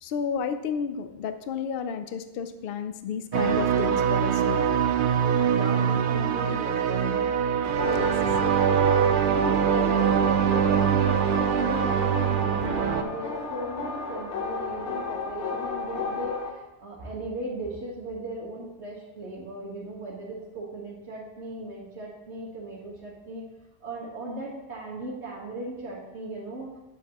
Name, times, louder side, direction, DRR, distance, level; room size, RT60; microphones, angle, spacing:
voice 1, 0.0-4.6 7.6-8.1, left 7 dB, 65° left, 9 dB, 0.7 m, -32 dB
sound 1, 3.3-13.0, right 8 dB, 60° right, 0.7 m, -23 dB
voice 2, 5.5-7.2 9.3-23.4 23.8-26.7, right 2 dB, 80° right, -4 dB, 1.8 m, -37 dB
sound 2, 7.8-16.5, left 4 dB, 85° left, 1.1 m, -33 dB
8.6 x 7.0 x 2.9 m, 0.96 s
omnidirectional pair, 1.1 m